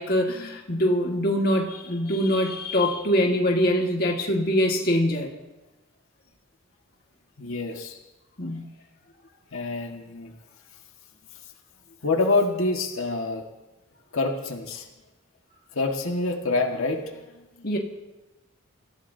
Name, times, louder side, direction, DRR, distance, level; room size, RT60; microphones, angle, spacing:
voice 1, 0.0-5.3 8.4-8.6 17.6-17.8, equal, 45° left, 0 dB, 1.8 m, -23 dB
voice 2, 7.4-8.0 9.5-10.3 12.0-13.4 14.1-14.8 15.7-17.7, left 3 dB, 85° left, 2 dB, 1.8 m, -27 dB
27.0 x 15.5 x 2.8 m, 1.0 s
head